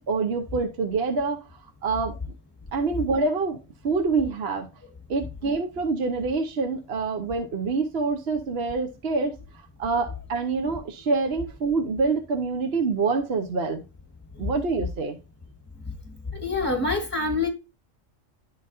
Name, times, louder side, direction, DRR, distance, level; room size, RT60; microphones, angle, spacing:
voice 1, 0.0-1.4 1.8-2.2 2.7-3.6 3.8-4.7 5.1-9.3 9.8-13.8 14.4-15.2, right 4 dB, 60° right, 1.1 m, -26 dB
voice 2, 16.3-17.5, left 3 dB, 10° left, 1.5 m, -26 dB
11.5 x 4.0 x 2.6 m
omnidirectional pair, 1.3 m